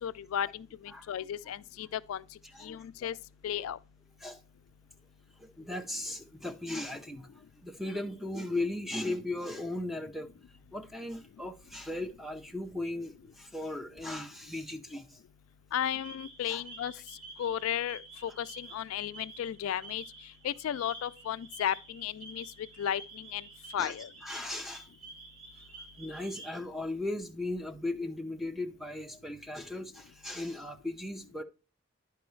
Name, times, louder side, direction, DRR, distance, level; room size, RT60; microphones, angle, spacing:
voice 1, 0.0-2.2 2.6-3.2 3.4-3.8 15.7-16.9 17.4-20.0 20.4-22.4 22.8-23.4 23.7-24.1, left 10 dB, 85° left, 0.3 m, -34 dB
voice 2, 2.5-3.1 4.2-4.4 5.4-10.4 10.7-15.2 16.5-16.6 19.7-19.8 23.8-23.9 24.2-24.9 26.0-31.4, left 2 dB, ahead, 0.5 m, -37 dB
sound 1, 15.8-26.6, right 3 dB, 70° right, 2.3 m, -50 dB
10.5 x 4.6 x 3.1 m
head